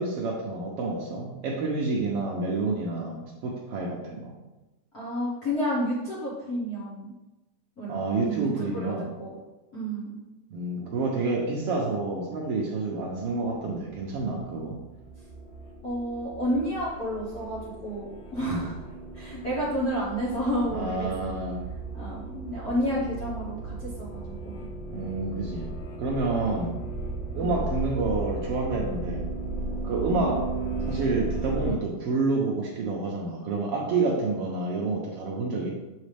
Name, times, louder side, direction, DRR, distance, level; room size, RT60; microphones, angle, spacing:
voice 1, 0.0-4.3 7.9-9.1 10.5-14.8 18.4-18.7 20.7-21.6 24.9-26.7 27.3-29.2 29.8-30.5 30.9-35.7, right 3 dB, 80° right, -2 dB, 1.3 m, -29 dB
voice 2, 4.9-7.1 7.8-9.3 9.7-10.2 15.8-18.8 19.1-21.3 21.9-24.6 26.4-26.6 27.4-27.5 30.0-30.2, equal, 65° left, -8 dB, 0.8 m, -31 dB
sound 1, 13.7-31.7, right 3 dB, 85° left, 2.7 m, -36 dB
7.5 x 4.1 x 3.3 m, 1.1 s
omnidirectional pair, 3.6 m